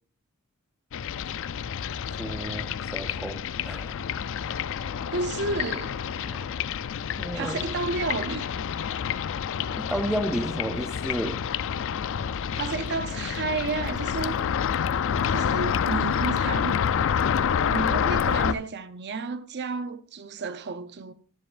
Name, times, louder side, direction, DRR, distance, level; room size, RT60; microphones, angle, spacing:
sound 1, 0.9-18.5, left 7 dB, 60° left, 0.4 m, -28 dB
voice 1, 2.2-4.0 6.3-6.7 7.2-7.6 9.8-11.4, equal, 5° right, 0.5 m, -32 dB
voice 2, 5.1-6.0 7.3-8.5 12.5-14.3 15.3-16.8 17.7-21.1, right 3 dB, 50° right, 0.6 m, -31 dB
14.5 x 7.7 x 2.5 m
head